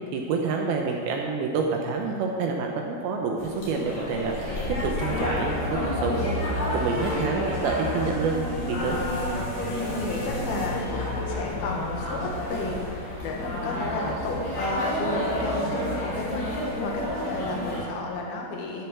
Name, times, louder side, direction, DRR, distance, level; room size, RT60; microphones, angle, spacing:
voice 1, 0.1-9.0, right 4 dB, 75° right, 1 dB, 2.6 m, -28 dB
sound 1, 3.4-17.8, left 1 dB, 45° left, 3.4 m, -30 dB
sound 2, 5.1-12.7, right 1 dB, 15° left, 1.2 m, -40 dB
voice 2, 9.6-18.9, left 3 dB, 70° left, -1 dB, 3.3 m, -33 dB
13.5 x 6.8 x 6.1 m, 2.2 s
omnidirectional pair, 4.6 m